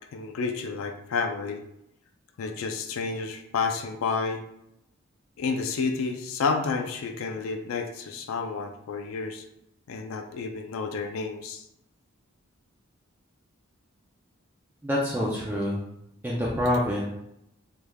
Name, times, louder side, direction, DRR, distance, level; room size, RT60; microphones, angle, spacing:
voice 1, 0.1-1.6 2.4-4.4 5.4-9.4 9.9-11.6, left 4 dB, 85° left, 5 dB, 0.4 m, -30 dB
voice 2, 14.8-15.8 16.2-17.1, left 1 dB, 10° right, -5 dB, 0.4 m, -26 dB
3.3 x 3.2 x 2.2 m, 0.80 s
head